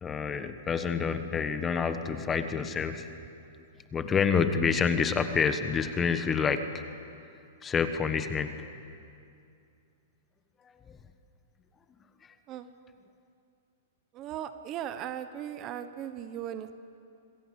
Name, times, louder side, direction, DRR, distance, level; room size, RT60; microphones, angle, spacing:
voice 1, 0.0-3.1 3.9-6.6 7.6-8.5 10.9-11.0, left 6 dB, 15° left, 9 dB, 1.3 m, -28 dB
voice 2, 14.1-16.7, right 10 dB, 30° right, 11 dB, 1.1 m, -38 dB
26.5 x 21.5 x 8.2 m, 2.5 s
hypercardioid pair, 150°, 0 cm